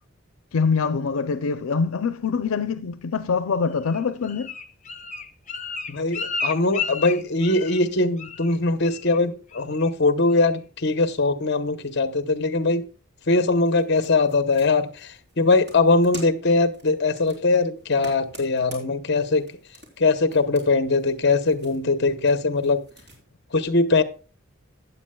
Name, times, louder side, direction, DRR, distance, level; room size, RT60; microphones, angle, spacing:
voice 1, 0.5-4.5, left 5 dB, 90° left, 0.5 m, -24 dB
Bird, 3.8-7.9 8.2-8.6 8.8-9.2 9.5-9.9 10.3-10.4, left 5 dB, 35° left, 0.8 m, -32 dB
voice 2, 5.9-12.8 13.3-19.5 20.0-22.8 23.5-24.0, left 3 dB, 55° left, 0.9 m, -21 dB
sound 1, 13.6-23.2, right 2 dB, 55° right, 3.7 m, -48 dB
15.0 x 9.3 x 2.3 m
head